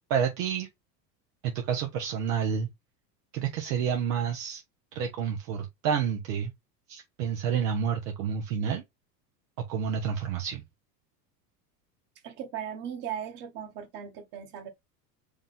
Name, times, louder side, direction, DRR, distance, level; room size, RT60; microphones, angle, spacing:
voice 1, 0.1-0.7 1.4-2.7 3.3-4.6 4.9-6.5 6.9-8.8 9.7-10.6, right 7 dB, 70° right, 1.1 m, -29 dB
voice 2, 12.2-14.7, right 9 dB, 50° right, 1.8 m, -38 dB
5.2 x 2.6 x 3.4 m
hypercardioid pair, 90°, 50 cm